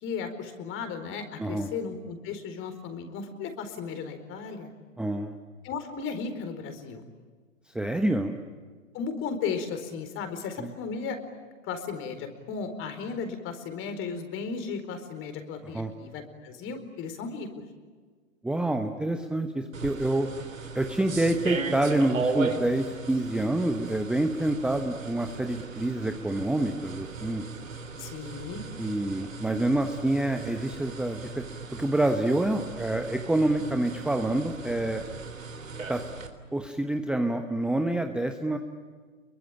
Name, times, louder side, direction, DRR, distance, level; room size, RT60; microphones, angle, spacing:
voice 1, 0.0-4.7 5.6-7.0 8.9-11.2 11.6-17.5 28.0-28.6, left 5 dB, 30° left, 8 dB, 4.5 m, -35 dB
voice 2, 5.0-5.4 7.7-8.4 10.6-10.7 15.7-15.9 18.4-20.3 20.7-27.4 28.8-31.4 31.7-35.0 35.9-36.0 36.5-38.6, right 1 dB, ahead, 5 dB, 1.1 m, -27 dB
sound 1, 19.7-36.3, right 4 dB, 80° right, 3.7 m, -37 dB
29.5 x 23.0 x 8.8 m, 1.5 s
figure-of-eight pair, 115°, 39 cm